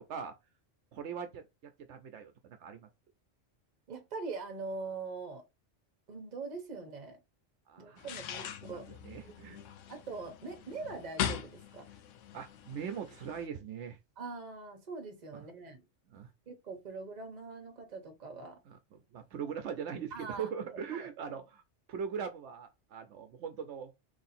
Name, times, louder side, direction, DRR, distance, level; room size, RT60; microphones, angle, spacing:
voice 1, 0.9-2.9 7.7-8.5 8.7-9.6 12.3-14.0 15.3-15.5 16.1-16.3 18.7-21.6 21.9-23.9, right 7 dB, 75° right, 0.9 m, -41 dB
voice 2, 3.9-5.4 6.1-7.2 7.8-8.9 9.2-11.9 14.2-15.8 16.5-18.6 20.1-21.4, right 4 dB, 40° right, 0.9 m, -43 dB
sound 1, 8.0-13.5, left 9 dB, 90° left, 0.9 m, -41 dB
3.1 x 2.7 x 4.1 m
omnidirectional pair, 1.3 m